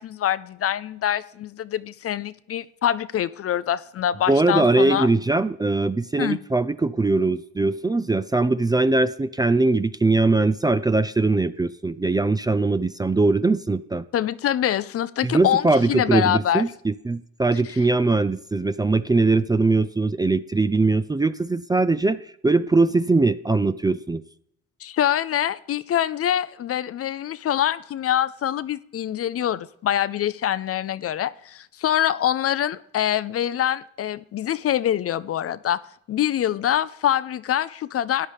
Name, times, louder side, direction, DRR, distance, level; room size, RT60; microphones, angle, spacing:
voice 1, 0.0-5.1 6.2-6.4 14.1-16.6 24.8-35.8 36.1-38.3, left 11 dB, 50° left, 0.5 m, -25 dB
voice 2, 4.3-14.1 15.2-24.2, right 3 dB, 15° right, 0.4 m, -21 dB
13.5 x 9.8 x 3.5 m
cardioid pair, 90°, 30 cm